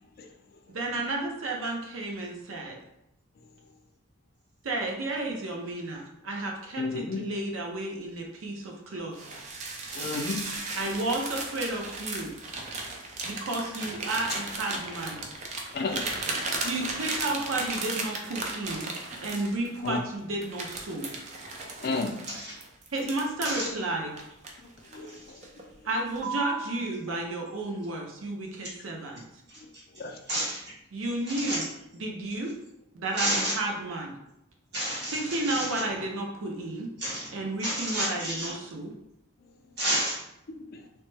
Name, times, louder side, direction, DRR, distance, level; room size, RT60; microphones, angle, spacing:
voice 1, 0.7-2.8 4.6-9.3 10.8-12.4 13.2-15.2 16.6-18.9 19.2-21.1 22.9-24.1 25.8-29.3 30.9-31.6 31.9-32.5 32.9-34.2 35.1-36.9 37.3-38.9, right 2 dB, 85° right, 1 dB, 0.6 m, -32 dB
voice 2, 6.8-7.2 9.9-10.5 14.3-14.4 15.7-16.2 19.8-20.0 21.8-22.3 24.6-25.7 29.6-29.7 30.0-30.2 39.4-39.6 40.6-40.9, left 3 dB, 50° left, 4 dB, 0.3 m, -33 dB
sound 1, 9.1-19.9 20.4-23.6 24.2-25.1 25.4-25.7 26.2-26.7, right 3 dB, 35° right, 0.4 m, -35 dB
voice 3, 29.5-29.8 30.3-30.8 31.3-31.6 33.2-33.5 34.7-35.8 37.0-38.6 39.8-40.2, right 1 dB, 55° right, -4 dB, 1.1 m, -31 dB
3.1 x 2.0 x 3.2 m, 0.83 s
head